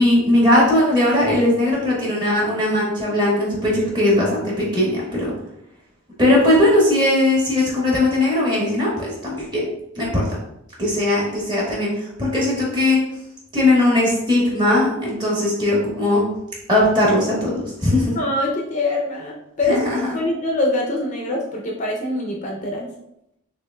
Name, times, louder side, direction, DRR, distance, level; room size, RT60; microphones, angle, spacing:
voice 1, 0.0-5.3 6.2-9.6 10.0-10.2 10.8-11.9 12.2-13.0 13.5-16.2 16.7-17.5 17.8-18.2 19.7-20.0, left 1 dB, 20° right, -5 dB, 1.3 m, -18 dB
voice 2, 18.1-19.8 20.1-22.9, left 2 dB, 35° left, 0 dB, 0.5 m, -24 dB
5.8 x 2.5 x 2.3 m, 0.81 s
head